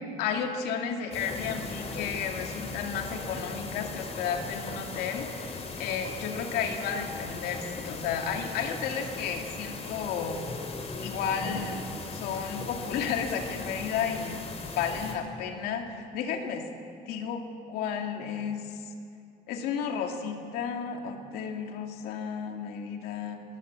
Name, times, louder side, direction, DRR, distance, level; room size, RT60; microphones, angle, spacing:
voice 1, 0.0-10.4 11.0-11.8 12.1-14.4 14.8-16.6 17.1-18.6 19.5-23.4, left 7 dB, 85° left, 3 dB, 2.4 m, -33 dB
sound 1, 1.1-15.1, left 3 dB, 40° left, 4.2 m, -38 dB
21.5 x 18.5 x 8.5 m, 2.4 s
supercardioid pair, 80°, 16 cm